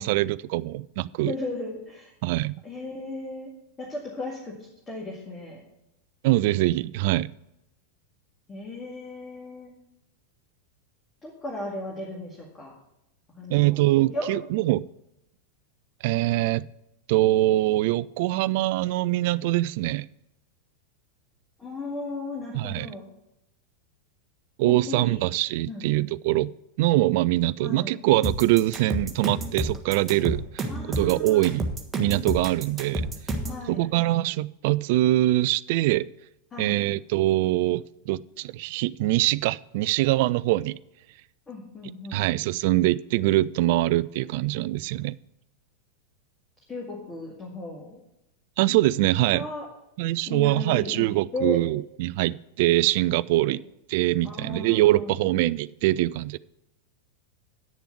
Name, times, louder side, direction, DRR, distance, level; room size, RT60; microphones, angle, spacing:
voice 1, 0.0-1.3 2.2-2.5 6.2-7.3 13.5-14.8 16.0-16.6 17.1-20.1 22.5-22.9 24.6-31.7 32.0-33.1 33.7-36.1 36.6-40.8 42.1-45.2 48.6-49.4 50.0-53.6 53.9-56.4, right 16 dB, 50° right, 20 dB, 0.3 m, -23 dB
voice 2, 1.2-2.1 2.6-3.5 3.8-5.6 8.5-9.7 11.2-12.7 13.4-14.3 21.6-23.1 24.6-25.2 25.6-25.8 27.6-27.9 30.7-31.5 33.5-33.9 36.5-36.8 41.5-42.2 46.7-48.0 49.2-49.7 50.3-51.1 51.3-51.6 53.5-53.6 54.2-55.2, left 2 dB, 20° left, -3 dB, 2.2 m, -35 dB
sound 1, 28.2-33.6, right 1 dB, 15° right, 1.4 m, -29 dB
9.5 x 6.8 x 6.0 m, 0.87 s
figure-of-eight pair, 90°, 0 cm